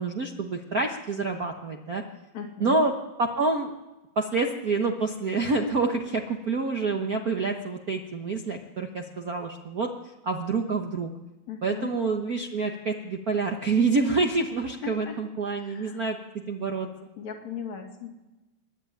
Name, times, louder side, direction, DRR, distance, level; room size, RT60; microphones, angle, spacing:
voice 1, 0.0-2.0 2.6-2.9 3.2-3.7 4.2-9.9 10.2-11.1 11.6-16.2 16.5-16.9, right 3 dB, 50° right, 3 dB, 1.0 m, -27 dB
voice 2, 2.3-2.8 11.5-11.9 14.8-15.2 15.5-16.0 17.2-18.1, left 7 dB, 70° left, 4 dB, 3.5 m, -38 dB
25.5 x 11.5 x 9.2 m, 1.1 s
omnidirectional pair, 3.3 m